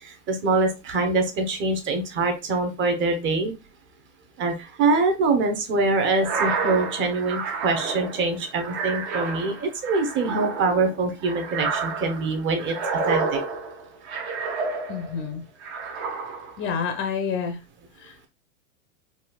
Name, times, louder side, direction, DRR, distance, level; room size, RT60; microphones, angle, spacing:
voice 1, 0.0-3.5 4.4-13.4, right 3 dB, 30° right, 6 dB, 0.8 m, -24 dB
sound 1, 6.1-15.2 15.6-16.6, right 4 dB, 55° right, 1.1 m, -30 dB
voice 2, 14.9-15.4 16.6-17.6 18.0-18.3, left 6 dB, 30° left, 5 dB, 0.6 m, -29 dB
4.1 x 2.4 x 2.3 m, 0.28 s
hypercardioid pair, 120°, 40 cm